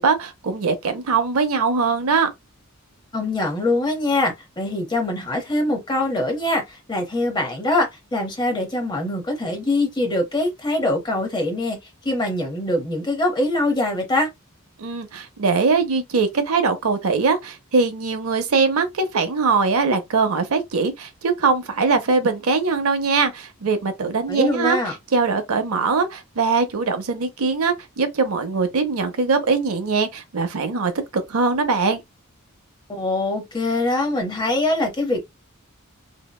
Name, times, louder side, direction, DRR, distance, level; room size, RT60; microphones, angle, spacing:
voice 1, 0.0-2.3 14.8-32.0, right 4 dB, 80° right, 0.6 m, -21 dB
voice 2, 3.1-11.8 12.0-14.3 24.3-25.0 32.9-35.2, left 2 dB, 20° left, 0.8 m, -23 dB
2.7 x 2.1 x 2.2 m
head